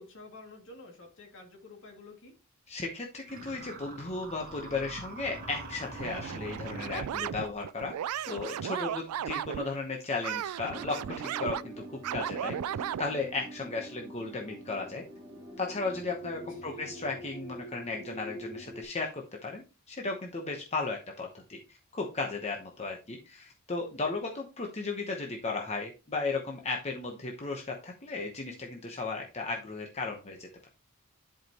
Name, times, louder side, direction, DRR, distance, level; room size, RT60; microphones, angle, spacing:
voice 1, 0.0-2.3 16.5-16.9, left 2 dB, 60° left, 2 dB, 2.4 m, -50 dB
voice 2, 2.7-7.9 8.2-11.7 12.1-15.0 15.6-30.7, left 3 dB, 30° left, 1 dB, 1.0 m, -35 dB
sound 1, 3.3-7.6, right 2 dB, 40° right, 1.7 m, -44 dB
sound 2, 6.0-9.7 10.2-13.0, right 10 dB, 75° right, 0.3 m, -35 dB
sound 3, 10.6-18.8, equal, 10° right, 2.1 m, -45 dB
10.5 x 5.0 x 2.9 m, 0.31 s
head